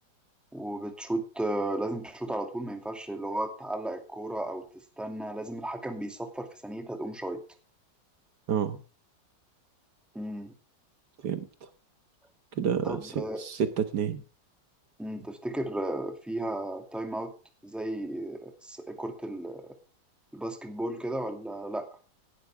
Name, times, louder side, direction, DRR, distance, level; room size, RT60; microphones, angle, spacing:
voice 1, 0.5-4.6 5.0-7.4 10.1-10.5 12.8-13.4 15.0-17.3 17.6-19.7 20.3-21.9, right 1 dB, ahead, 6 dB, 2.3 m, -34 dB
voice 2, 12.6-14.2, right 7 dB, 65° right, 10 dB, 1.7 m, -29 dB
17.5 x 12.0 x 3.5 m, 0.35 s
omnidirectional pair, 1.9 m